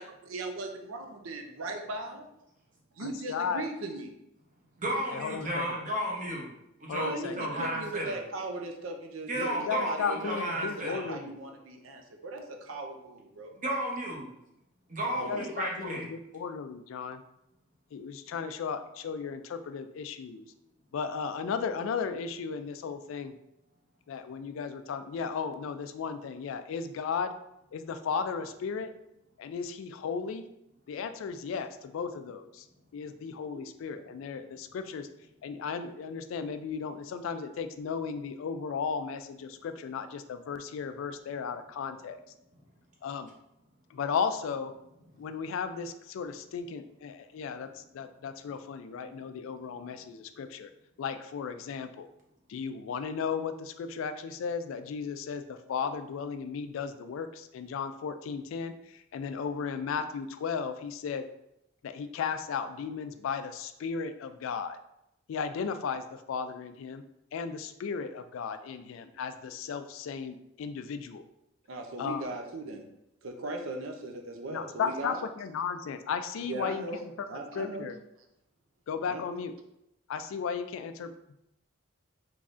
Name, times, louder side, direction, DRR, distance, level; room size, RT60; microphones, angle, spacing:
voice 1, 0.3-2.2 3.0-4.1 7.0-9.6 9.9-13.5 15.1-15.4 71.7-72.9 73.2-75.2 76.4-77.9 79.1-79.2, right 2 dB, 75° right, 4 dB, 0.5 m, -38 dB
voice 2, 3.0-3.7 5.1-5.7 6.9-7.8 9.3-11.3 15.3-17.2 17.9-20.5 20.9-23.3 24.1-27.3 27.7-28.9 29.4-30.5 30.9-32.7 32.9-35.1 35.4-42.2 43.0-43.3 43.9-44.7 45.2-50.7 51.0-52.1 52.5-61.3 61.8-64.8 65.3-67.0 67.3-71.2 72.0-72.3 74.5-76.8 77.3-78.0 78.9-79.5 80.1-81.1, left 6 dB, 75° left, 9 dB, 0.3 m, -35 dB
voice 3, 4.8-6.5 6.8-8.1 9.3-11.1 13.6-14.3 14.9-16.1 33.5-33.6 49.0-49.1, right 1 dB, 40° right, -2 dB, 0.8 m, -33 dB
3.6 x 3.1 x 2.5 m, 0.84 s
head